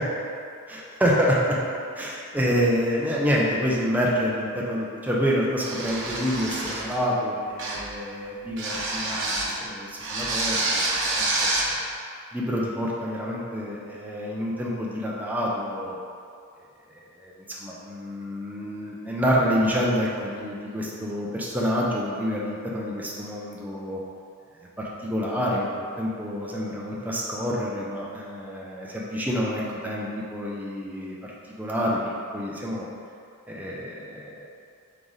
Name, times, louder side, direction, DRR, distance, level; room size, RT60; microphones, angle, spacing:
voice 1, 0.7-1.6 1.9-11.3 11.6-11.8 12.3-16.0 17.2-17.3 17.6-24.0 24.8-31.1 31.6-32.1 32.3-32.9 33.5-34.5, equal, 10° right, -5 dB, 0.4 m, -27 dB
sound 1, 5.6-7.0 7.6-7.9 8.6-9.6 10.0-11.7, right 2 dB, 60° right, 0.7 m, -27 dB
3.9 x 3.3 x 3.7 m, 2.4 s
head